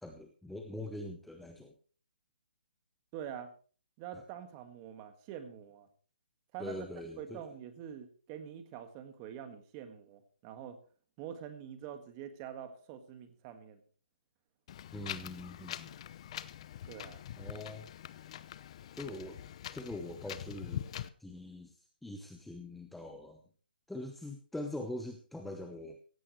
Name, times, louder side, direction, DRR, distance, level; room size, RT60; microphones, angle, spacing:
voice 1, 0.0-1.7 4.1-4.2 6.6-7.4 14.9-15.9 17.4-17.9 18.9-19.4 19.7-20.9 21.2-21.8 22.0-23.4 23.9-26.0, left 1 dB, ahead, 4 dB, 0.9 m, -43 dB
voice 2, 3.1-3.5 4.0-5.9 6.5-6.9 7.2-10.8 11.2-13.8 16.9-17.2, right 9 dB, 25° right, 9 dB, 1.8 m, -45 dB
Wind, 14.7-21.1, left 11 dB, 35° left, 0.8 m, -44 dB
16.5 x 15.0 x 3.2 m, 0.40 s
hypercardioid pair, 155°, 5 cm